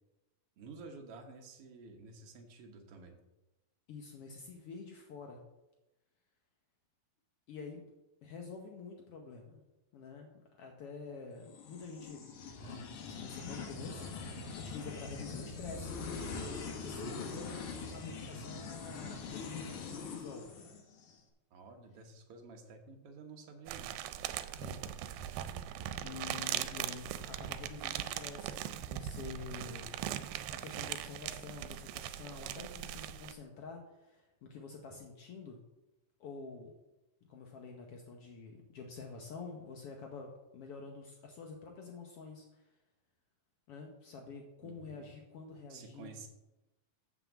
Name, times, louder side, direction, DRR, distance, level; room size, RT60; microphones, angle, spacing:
voice 1, 0.6-3.1 21.5-23.9 44.6-45.1 45.7-46.3, right 4 dB, 70° right, 3 dB, 1.4 m, -51 dB
voice 2, 3.9-5.4 7.5-7.8 8.2-9.6 9.9-10.3 10.6-12.3 12.6-15.9 16.3-17.7 17.9-20.5 24.6-25.4 26.0-30.0 30.5-35.6 36.2-36.7 37.3-42.7 43.7-46.1, left 5 dB, 85° left, 2 dB, 1.2 m, -48 dB
sound 1, 11.5-21.2, left 4 dB, 65° left, 2.7 m, -43 dB
sound 2, 23.7-33.3, right 11 dB, 85° right, 2.3 m, -40 dB
7.5 x 6.1 x 7.2 m, 0.98 s
omnidirectional pair, 4.1 m